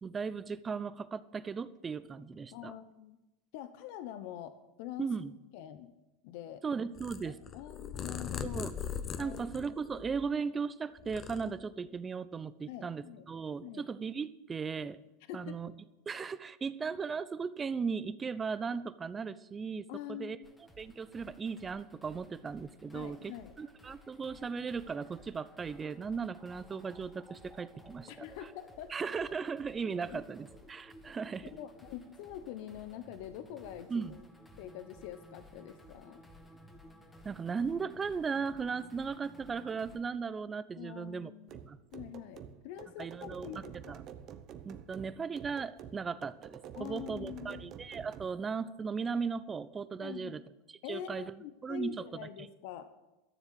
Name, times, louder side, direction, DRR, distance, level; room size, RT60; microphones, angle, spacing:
voice 1, 0.0-2.7 5.0-5.3 6.6-7.4 8.4-8.8 9.2-15.0 15.3-15.7 16.1-20.4 20.8-28.1 28.9-31.5 33.9-34.2 37.2-41.3 41.7-41.8 43.0-44.0 44.7-50.4 50.7-51.9 52.2-52.5, right 5 dB, 20° right, 16 dB, 0.6 m, -37 dB
voice 2, 2.5-3.2 3.5-5.1 5.5-5.9 6.2-6.6 7.2-8.6 9.2-9.6 12.7-13.3 13.6-13.9 15.3-15.7 19.9-20.5 22.9-23.5 28.1-28.9 30.1-30.2 31.4-34.2 34.6-36.2 40.7-41.6 41.9-44.0 46.8-47.6 50.0-50.4 50.8-52.9, left 11 dB, 65° left, 11 dB, 0.9 m, -45 dB
Purr, 7.0-10.5 10.9-12.0, left 8 dB, 35° left, 0.9 m, -40 dB
sound 1, 20.4-40.0, left 1 dB, 10° left, 1.8 m, -56 dB
sound 2, 41.5-48.3, right 9 dB, 45° right, 0.9 m, -48 dB
13.0 x 7.2 x 8.0 m, 1.0 s
supercardioid pair, 110°, 0 cm